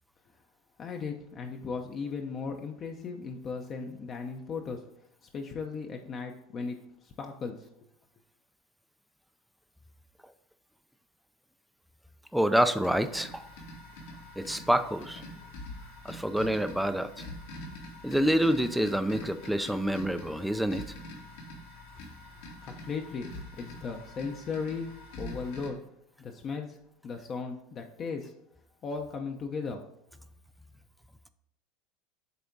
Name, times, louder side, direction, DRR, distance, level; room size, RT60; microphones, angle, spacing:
voice 1, 0.8-4.8 5.3-7.7 22.6-23.3 23.6-24.9 25.2-25.8 26.2-26.8 27.0-28.3 28.8-29.8, left 5 dB, 35° left, 3 dB, 0.7 m, -36 dB
voice 2, 12.3-13.5 14.4-15.2 16.0-17.2 18.0-20.8, equal, ahead, 10 dB, 0.4 m, -27 dB
sound 1, 12.8-25.7, left 1 dB, 80° left, 2.3 m, -45 dB
8.1 x 3.5 x 4.0 m, 0.76 s
supercardioid pair, 135°, 0 cm